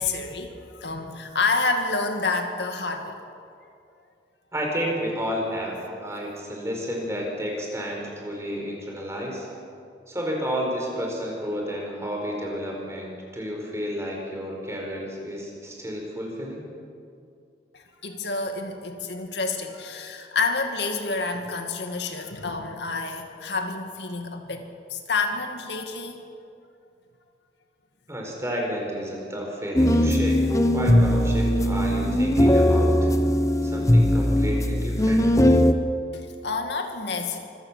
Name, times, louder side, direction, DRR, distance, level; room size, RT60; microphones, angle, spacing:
voice 1, 0.0-3.2 17.7-26.2 36.1-37.4, left 3 dB, 70° left, 5 dB, 2.3 m, -29 dB
voice 2, 4.5-9.5 10.1-16.6 28.1-30.4 30.7-33.1 33.6-35.3, equal, 15° right, 0 dB, 4.5 m, -31 dB
sound 1, 29.8-35.7, equal, 20° left, 0.9 m, -19 dB
25.5 x 14.5 x 7.5 m, 2.5 s
head